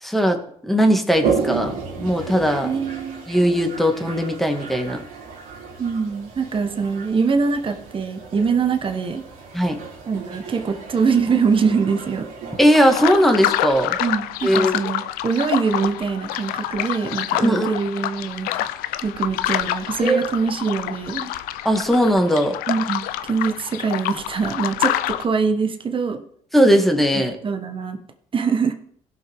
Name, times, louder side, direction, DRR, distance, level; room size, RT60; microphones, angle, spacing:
voice 1, 0.0-0.4 0.6-2.7 3.3-5.0 9.5-9.8 12.6-14.0 14.4-14.7 17.4-17.7 20.0-20.3 21.2-21.3 21.6-22.6 26.5-27.4, equal, ahead, 4 dB, 1.9 m, -18 dB
Toilet flush, 1.1-12.6, right 6 dB, 75° right, 3.3 m, -32 dB
voice 2, 2.6-3.2 5.8-9.2 10.1-12.3 14.0-18.5 19.0-21.2 22.7-26.2 27.4-28.0 28.3-28.7, right 5 dB, 35° right, 6 dB, 1.3 m, -23 dB
sound 1, 12.7-25.2, left 13 dB, 80° left, 0.5 m, -27 dB
16.5 x 5.9 x 3.6 m, 0.64 s
supercardioid pair, 75°, 15 cm